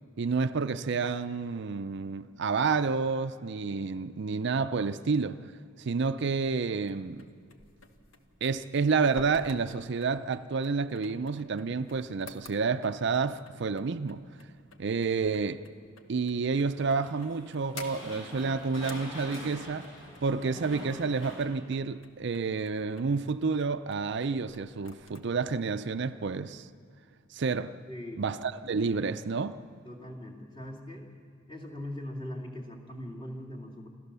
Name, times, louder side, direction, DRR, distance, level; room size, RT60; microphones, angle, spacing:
voice 1, 0.2-5.4 5.8-7.3 8.4-14.2 14.8-15.6 16.1-19.9 20.2-26.7 27.3-27.7 28.2-29.6, right 4 dB, 60° right, 0.5 m, -29 dB
sound 1, 6.1-25.2, left 3 dB, 85° left, 1.3 m, -53 dB
sound 2, 16.8-21.5, equal, 70° left, 7.1 m, -45 dB
voice 2, 27.9-28.2 29.8-31.1 31.5-33.9, left 1 dB, 25° left, 2.6 m, -40 dB
28.0 x 14.0 x 6.9 m
head